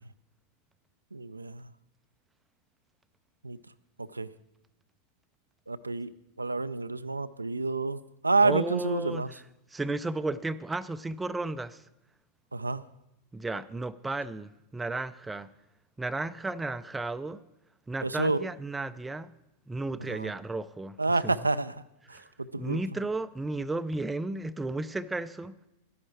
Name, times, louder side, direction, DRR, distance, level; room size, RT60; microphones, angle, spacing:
voice 1, 1.1-1.6 3.4-3.6 4.0-4.3 5.7-6.1 6.4-9.3 12.5-12.8 18.0-18.5 20.1-20.3 21.0-21.7 22.1-22.2 22.5-22.8, right 3 dB, 80° right, 13 dB, 0.4 m, -28 dB
voice 2, 8.4-9.4 9.7-11.8 13.3-15.5 16.0-17.4 17.9-19.3 19.7-21.0 21.2-21.3 22.1-22.2 22.6-25.5, right 2 dB, 10° right, 13 dB, 0.4 m, -33 dB
13.0 x 10.5 x 4.6 m, 0.91 s
figure-of-eight pair, 90°, 0 cm